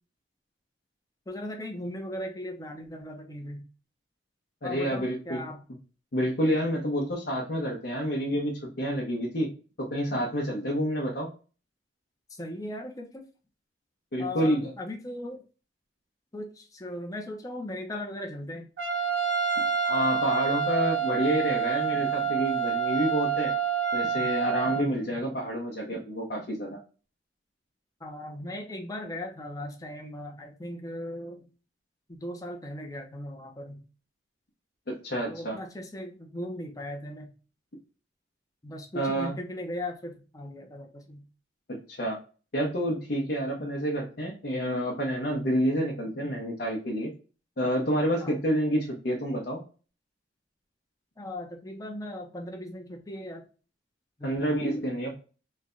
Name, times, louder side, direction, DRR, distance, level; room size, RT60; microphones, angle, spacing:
voice 1, 1.3-3.6 4.6-5.6 12.3-13.2 14.2-15.4 16.3-18.7 28.0-31.5 32.1-33.8 35.3-37.3 38.6-41.2 48.2-48.4 51.2-53.4 54.2-54.8, left 1 dB, 20° left, 2 dB, 0.6 m, -38 dB
voice 2, 4.6-5.4 6.1-9.5 9.8-11.3 14.1-14.7 19.8-23.5 23.9-26.8 34.9-35.6 38.9-39.3 41.7-42.2 42.5-47.1 47.6-49.6 54.2-55.2, equal, 55° left, -2 dB, 0.8 m, -28 dB
Trumpet, 18.8-24.8, right 6 dB, 75° right, 0.7 m, -27 dB
3.2 x 2.2 x 3.7 m, 0.36 s
head